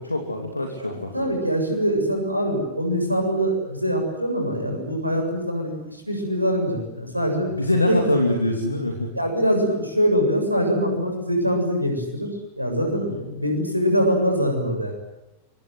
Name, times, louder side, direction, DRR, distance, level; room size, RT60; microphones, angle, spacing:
voice 1, 0.0-1.3 7.5-9.1 12.9-13.2, left 1 dB, 85° left, 3 dB, 2.9 m, -24 dB
voice 2, 0.8-7.5 7.9-8.1 9.1-12.3 12.6-14.9, equal, 90° right, 4 dB, 7.2 m, -23 dB
27.5 x 24.0 x 8.0 m, 0.91 s
figure-of-eight pair, 90°, 0 cm